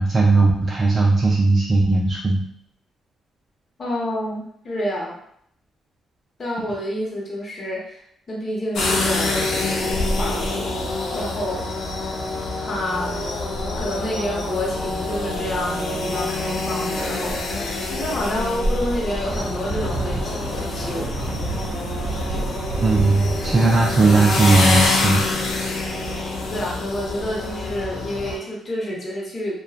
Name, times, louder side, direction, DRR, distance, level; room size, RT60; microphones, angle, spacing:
voice 1, 0.0-2.4 22.8-25.2, right 3 dB, 30° right, -3 dB, 0.4 m, -17 dB
voice 2, 3.8-5.2 6.4-8.0 8.3-11.7 12.6-13.2 13.8-21.3 22.2-22.7 26.5-29.6, left 1 dB, 40° left, -3 dB, 0.8 m, -29 dB
sound 1, 8.8-28.4, left 2 dB, 70° left, 0.5 m, -26 dB
sound 2, 19.3-26.7, right 2 dB, 55° right, 0.8 m, -31 dB
2.6 x 2.1 x 2.3 m, 0.68 s
cardioid pair, 90°, 0 cm